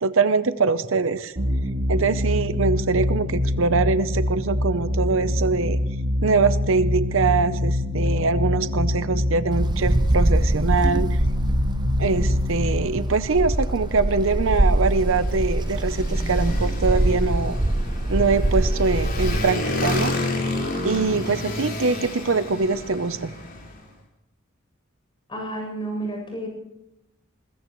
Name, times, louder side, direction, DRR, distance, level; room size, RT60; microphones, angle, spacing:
voice 1, 0.0-1.3 1.9-5.8 6.2-11.2 12.0-17.6 18.1-20.1 20.8-23.3, right 4 dB, 70° right, 12 dB, 0.7 m, -23 dB
sound 1, 1.3-14.6, left 1 dB, 50° right, 4.8 m, -25 dB
Wind, 9.5-19.5, right 1 dB, 20° right, 0.6 m, -24 dB
Motorcycle, 13.1-23.8, left 1 dB, 45° left, 4.6 m, -31 dB
voice 2, 25.3-26.5, right 1 dB, 25° left, 1 dB, 7.8 m, -30 dB
22.0 x 21.0 x 3.1 m, 0.90 s
head